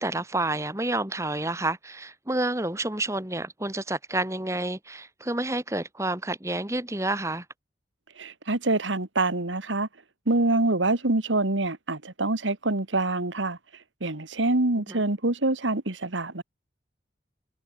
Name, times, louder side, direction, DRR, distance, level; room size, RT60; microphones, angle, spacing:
voice 1, 0.0-7.4 14.9-15.0, right 2 dB, 15° right, 2.0 m, -29 dB
voice 2, 8.2-9.9 10.3-13.6 14.0-16.4, right 2 dB, 90° right, 2.1 m, -25 dB
head